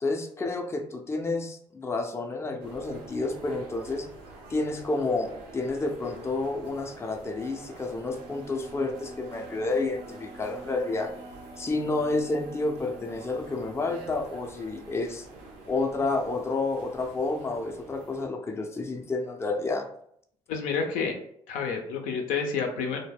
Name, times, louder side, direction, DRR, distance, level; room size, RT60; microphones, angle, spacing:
voice 1, 0.0-4.1 4.5-11.1 11.6-15.3 15.7-19.9, left 3 dB, 20° left, 3 dB, 0.4 m, -30 dB
sound 1, 2.6-18.3, right 3 dB, 85° right, 0.6 m, -47 dB
Wind instrument woodwind instrument, 7.9-14.2, right 2 dB, 45° right, 0.5 m, -48 dB
voice 2, 20.5-21.2 21.5-23.0, left 5 dB, 75° left, 4 dB, 0.5 m, -29 dB
2.2 x 2.1 x 3.3 m, 0.67 s
supercardioid pair, 65°, 14 cm